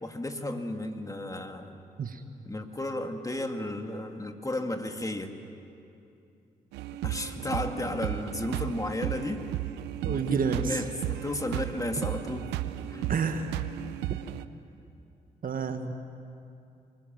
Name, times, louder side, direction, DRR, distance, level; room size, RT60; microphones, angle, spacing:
voice 1, 0.0-1.8 2.4-5.4 7.0-9.4 10.0-12.6 12.9-13.1, left 1 dB, 20° left, 5 dB, 2.2 m, -34 dB
sound 1, 6.7-14.5, right 14 dB, 90° right, 0.6 m, -34 dB
voice 2, 10.0-10.8 13.1-13.5 15.4-15.9, right 5 dB, 60° right, 8 dB, 1.5 m, -29 dB
25.5 x 19.5 x 7.6 m, 2.6 s
supercardioid pair, 50°, 17 cm